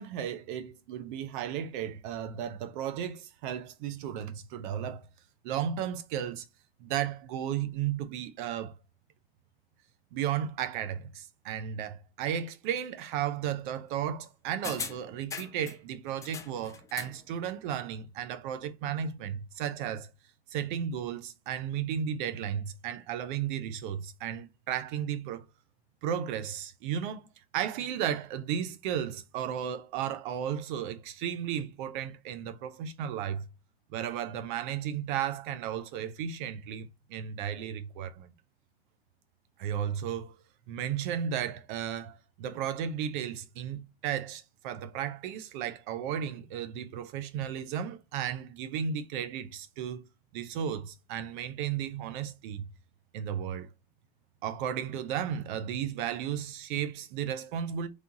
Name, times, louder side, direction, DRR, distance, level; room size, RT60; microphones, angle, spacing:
voice 1, 0.0-5.1 5.4-6.4 6.8-8.8 10.1-20.1 20.5-25.4 26.0-27.3 27.5-33.5 33.9-38.3 39.6-40.4 40.7-50.0 50.3-52.7 53.1-53.7 54.4-57.9, right 9 dB, 50° right, 0.8 m, -34 dB
sound 1, 14.6-15.8 16.2-17.2 17.5-17.6, left 6 dB, 10° left, 0.4 m, -40 dB
3.4 x 3.2 x 3.9 m
hypercardioid pair, 120°, 31 cm